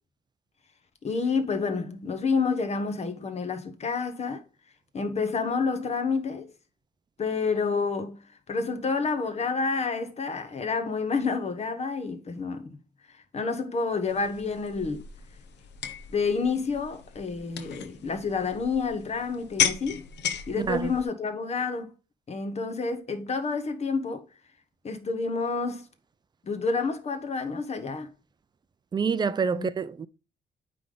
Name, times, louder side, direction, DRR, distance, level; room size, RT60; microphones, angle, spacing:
voice 1, 1.0-4.4 4.9-6.5 7.2-12.8 13.1-15.0 16.1-20.0 20.5-21.9 22.3-24.2 24.8-25.9 26.4-28.1 29.5-29.7, left 4 dB, 40° left, 1.2 m, -29 dB
sound 1, 14.1-21.0, left 8 dB, 85° left, 0.8 m, -34 dB
voice 2, 20.6-20.9 28.9-30.1, right 5 dB, 25° right, 0.4 m, -27 dB
8.9 x 3.4 x 3.9 m
cardioid pair, 140°, 18 cm